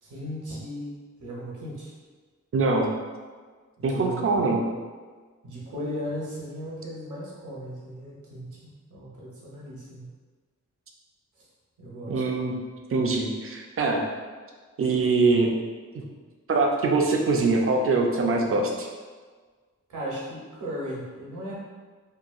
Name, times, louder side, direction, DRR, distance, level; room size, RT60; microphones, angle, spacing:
voice 1, 0.0-1.9 3.8-4.7 5.4-8.6 8.9-10.1 11.8-12.2 19.9-21.6, equal, 75° right, -6 dB, 0.9 m, -36 dB
voice 2, 2.5-2.9 3.8-4.6 12.1-12.6 12.9-14.0 14.8-15.5 16.5-18.9, right 3 dB, 45° right, 1 dB, 0.4 m, -23 dB
2.8 x 2.2 x 2.4 m, 1.5 s
wide cardioid pair, 90°, 31 cm